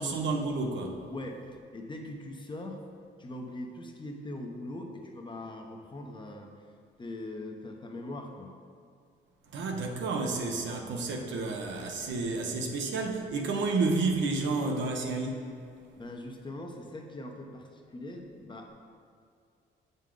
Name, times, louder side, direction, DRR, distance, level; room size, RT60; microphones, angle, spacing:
voice 1, 0.0-1.0 9.5-15.4, right 3 dB, 70° right, 2 dB, 0.9 m, -30 dB
voice 2, 1.1-1.4 1.7-2.8 3.2-6.5 7.0-8.5 16.0-18.7, left 1 dB, 25° left, 2 dB, 0.8 m, -41 dB
7.3 x 5.3 x 3.8 m, 2.3 s
cardioid pair, 90°, 20 cm